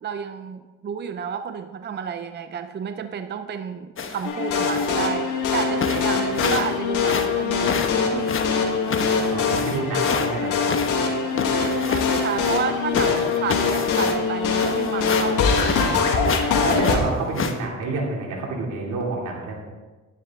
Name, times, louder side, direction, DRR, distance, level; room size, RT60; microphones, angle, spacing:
voice 1, 0.0-7.7 8.1-8.7 11.3-13.1 13.4-16.0 16.7-16.8, right 7 dB, 35° right, 9 dB, 0.6 m, -31 dB
sound 1, 4.0-4.3 4.7-5.0 5.5-5.6 5.8-6.7 7.0-10.3 10.7-12.7 12.9-16.0 16.2-16.5 16.8-17.5, left 5 dB, 45° left, 1.1 m, -28 dB
sound 2, 4.2-17.0, left 5 dB, 85° left, 1.8 m, -23 dB
voice 2, 9.2-10.9 12.9-13.1 16.6-19.6, right 3 dB, 85° right, -1 dB, 2.8 m, -29 dB
11.0 x 10.5 x 3.7 m, 1.2 s
cardioid pair, 90°, 30 cm